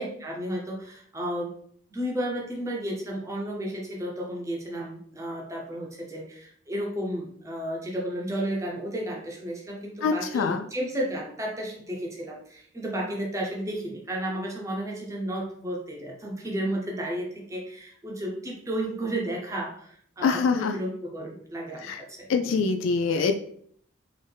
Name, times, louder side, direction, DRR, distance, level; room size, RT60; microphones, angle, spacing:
voice 1, 0.0-1.5 1.9-22.3, right 1 dB, 15° right, -2 dB, 0.7 m, -33 dB
voice 2, 10.0-10.6 20.2-20.7 21.8-22.0 22.3-23.3, left 5 dB, 80° left, 6 dB, 0.3 m, -24 dB
3.9 x 2.6 x 3.4 m, 0.63 s
head